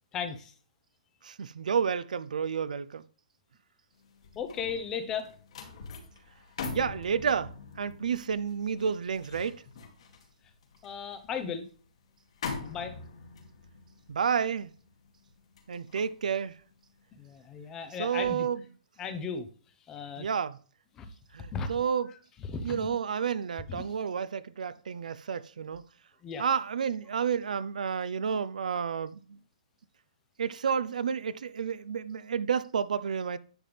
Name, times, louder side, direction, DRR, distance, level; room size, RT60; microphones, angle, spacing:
voice 1, 0.1-0.5 4.3-5.3 10.8-11.7 12.7-13.0 17.1-18.5 19.0-19.5 19.9-20.3 21.0-21.1 21.5-21.7 22.4-23.0 23.7-23.9 26.2-26.4, left 6 dB, 10° left, 0.7 m, -36 dB
voice 2, 1.2-3.0 6.7-9.6 14.1-14.7 15.7-16.6 18.0-18.6 20.2-20.6 21.3-22.1 22.6-25.8 26.4-29.4 30.4-33.4, right 7 dB, 80° right, 0.7 m, -30 dB
sound 1, 4.0-17.3 17.7-18.0, left 4 dB, 50° left, 2.2 m, -44 dB
10.5 x 7.6 x 3.4 m
hypercardioid pair, 175°, 4 cm